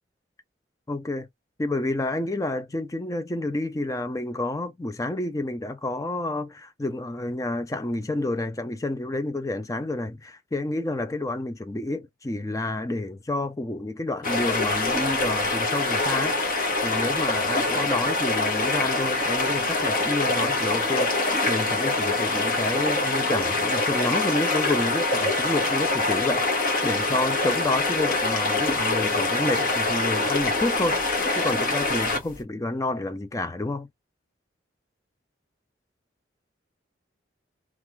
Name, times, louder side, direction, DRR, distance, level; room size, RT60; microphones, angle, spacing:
voice 1, 0.9-1.3 1.6-16.4 16.8-21.1 21.5-26.5 26.8-33.9, left 2 dB, 15° left, 0.4 m, -29 dB
sound 1, 14.2-32.4, left 2 dB, 45° left, 1.0 m, -24 dB
2.4 x 2.3 x 3.1 m
head